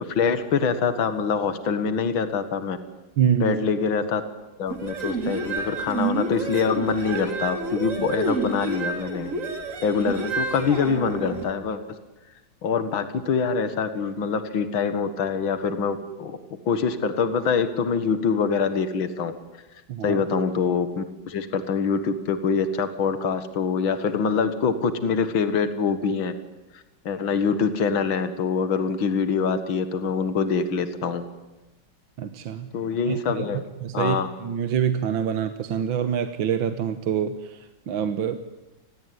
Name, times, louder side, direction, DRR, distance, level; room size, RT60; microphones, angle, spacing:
voice 1, 0.0-2.8 3.4-4.2 4.6-9.3 9.8-11.8 12.6-16.4 16.7-19.3 20.0-26.3 26.7-31.2 32.7-33.6 33.9-34.3, left 5 dB, 70° left, 10 dB, 2.4 m, -25 dB
voice 2, 3.2-3.6 19.9-20.2 32.2-32.7 33.1-33.5 33.8-38.4, right 8 dB, 70° right, 9 dB, 1.9 m, -26 dB
sound 1, 4.7-11.5, right 3 dB, 40° right, 3.6 m, -29 dB
29.0 x 21.5 x 9.5 m, 1.1 s
omnidirectional pair, 2.2 m